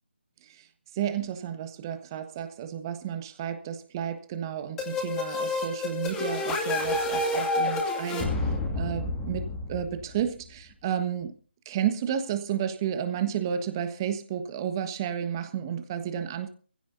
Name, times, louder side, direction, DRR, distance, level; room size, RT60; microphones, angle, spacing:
voice 1, 0.9-8.3 8.7-11.3 11.6-16.5, right 9 dB, 20° right, 9 dB, 1.4 m, -32 dB
sound 1, 4.8-10.4, left 2 dB, 10° left, 2.2 m, -29 dB
24.0 x 16.0 x 2.7 m, 0.41 s
figure-of-eight pair, 155°, 6 cm